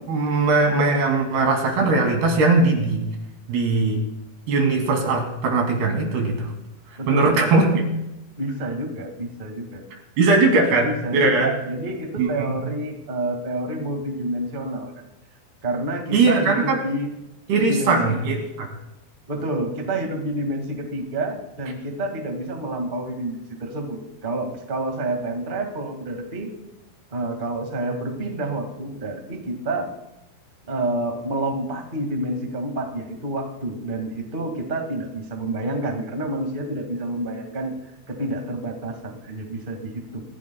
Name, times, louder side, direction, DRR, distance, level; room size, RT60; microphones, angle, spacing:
voice 1, 0.1-3.0 3.5-4.0 4.5-6.5 7.1-7.8 10.2-11.5 12.2-12.5 16.1-16.8 17.5-18.7, right 3 dB, 75° right, 1 dB, 4.7 m, -20 dB
voice 2, 7.0-7.4 8.4-9.8 10.6-15.0 15.6-17.1 17.6-18.1 19.3-26.5 27.1-29.9 30.7-37.7 38.1-40.2, right 1 dB, 40° right, 3 dB, 0.7 m, -28 dB
27.0 x 16.0 x 2.3 m, 0.91 s
omnidirectional pair, 4.7 m